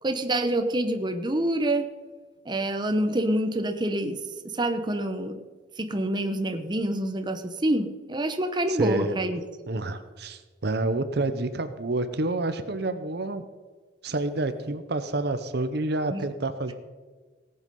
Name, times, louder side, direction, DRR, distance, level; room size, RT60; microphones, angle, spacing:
voice 1, 0.0-1.9 2.4-4.2 4.5-5.4 5.8-9.4 16.1-16.2, right 1 dB, 25° right, 6 dB, 0.9 m, -27 dB
voice 2, 8.7-9.2 9.7-13.4 14.0-16.7, right 2 dB, 60° right, 10 dB, 0.8 m, -28 dB
18.0 x 8.1 x 5.4 m, 1.4 s
head